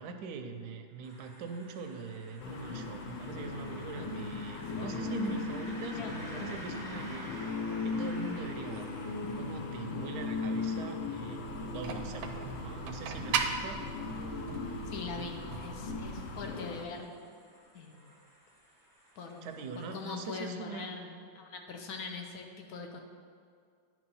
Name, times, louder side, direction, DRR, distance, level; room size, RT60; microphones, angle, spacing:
voice 1, 0.0-7.4 7.8-8.9 9.4-13.8 19.4-20.9, right 5 dB, 70° right, 6 dB, 1.0 m, -42 dB
sound 1, 1.0-20.3, equal, ahead, 0.8 m, -53 dB
sound 2, 2.4-16.8, left 4 dB, 85° left, 1.5 m, -38 dB
sound 3, 11.5-16.5, right 6 dB, 85° right, 1.4 m, -38 dB
voice 2, 14.9-17.1 17.7-18.1 19.2-23.0, left 4 dB, 70° left, 3 dB, 0.9 m, -42 dB
9.5 x 3.2 x 5.4 m, 2.2 s
omnidirectional pair, 2.1 m